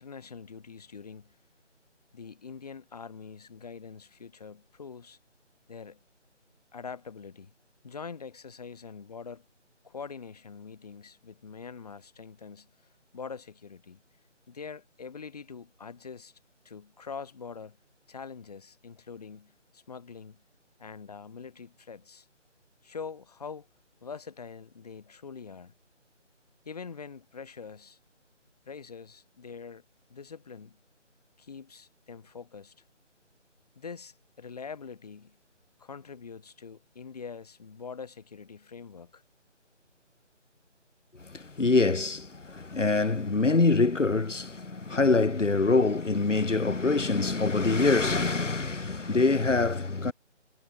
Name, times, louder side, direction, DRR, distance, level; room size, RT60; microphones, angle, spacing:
voice 1, 0.0-1.3 2.1-5.2 5.7-6.0 6.7-7.5 7.8-9.4 9.8-12.7 13.1-14.0 14.5-16.3 16.6-17.8 18.1-20.4 20.8-22.3 22.8-23.7 24.0-25.7 26.6-28.0 28.7-29.8 30.1-30.8 31.4-32.7 33.8-35.4 35.8-39.2, left 5 dB, 30° left, 2.8 m, -44 dB
voice 2, 41.3-50.1, left 3 dB, 75° left, 2.1 m, -25 dB
figure-of-eight pair, 165°, 37 cm